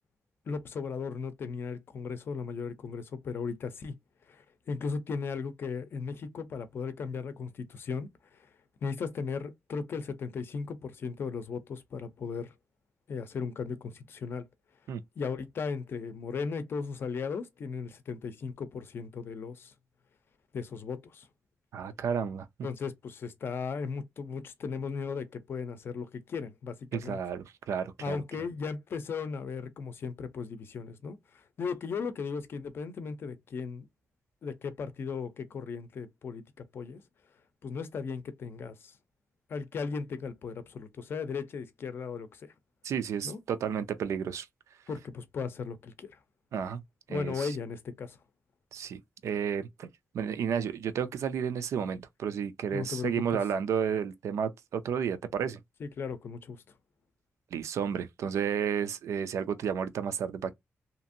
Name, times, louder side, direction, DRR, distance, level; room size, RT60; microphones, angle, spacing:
voice 1, 0.5-3.9 4.3-8.1 8.8-12.5 13.1-14.4 15.2-19.7 20.5-21.3 22.6-27.2 28.0-31.2 31.6-33.9 34.4-36.4 36.7-37.0 37.6-38.9 39.5-42.4 43.2-43.4 44.9-46.1 47.1-48.2 52.7-53.4 55.8-56.6, left 5 dB, 50° left, 0.5 m, -36 dB
voice 2, 21.7-22.5 26.9-28.2 42.8-44.5 46.5-46.8 47.1-47.6 48.7-49.9 50.1-55.6 57.5-60.5, right 7 dB, 85° right, 0.5 m, -32 dB
2.8 x 2.5 x 2.6 m
wide cardioid pair, 175°, 5 cm